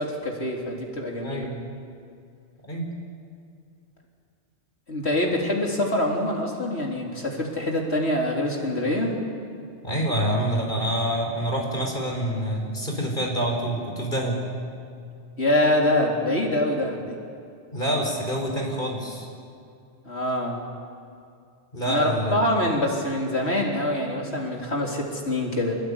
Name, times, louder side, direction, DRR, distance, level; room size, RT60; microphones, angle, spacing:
voice 1, 0.0-1.5 4.9-9.1 15.4-17.1 20.0-20.6 21.9-25.8, left 1 dB, 65° left, -1 dB, 4.1 m, -25 dB
voice 2, 1.2-1.6 2.6-2.9 9.8-14.4 17.7-19.3 21.7-22.4, right 1 dB, 45° left, 1 dB, 5.1 m, -27 dB
26.5 x 20.5 x 10.0 m, 2.4 s
omnidirectional pair, 1.2 m